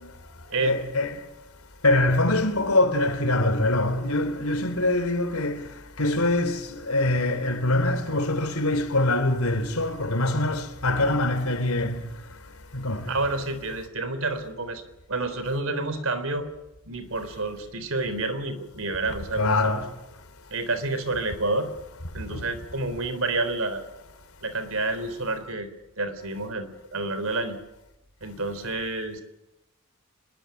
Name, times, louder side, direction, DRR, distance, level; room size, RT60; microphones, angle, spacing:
voice 1, 0.6-1.2 1.8-5.6 6.0-6.6 6.9-12.0 12.7-13.1 19.3-19.9 22.3-22.4, left 2 dB, 85° left, 3.3 m, -24 dB
voice 2, 13.1-14.8 15.1-16.5 16.9-19.8 20.5-21.7 22.1-23.8 24.4-25.7 26.0-27.6 28.2-29.2, right 2 dB, 70° right, 3.8 m, -29 dB
24.5 x 21.0 x 9.1 m
head